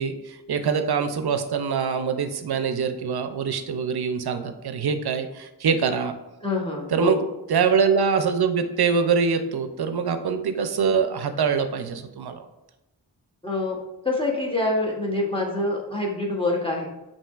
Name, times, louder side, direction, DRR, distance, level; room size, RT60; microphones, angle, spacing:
voice 1, 0.0-6.1 6.9-7.2 7.5-12.5, right 6 dB, 60° right, 9 dB, 0.5 m, -24 dB
voice 2, 6.4-7.3 13.4-13.8 14.0-16.9, left 2 dB, 10° left, -2 dB, 0.9 m, -26 dB
5.5 x 2.8 x 2.4 m, 0.96 s
wide cardioid pair, 65°, 43 cm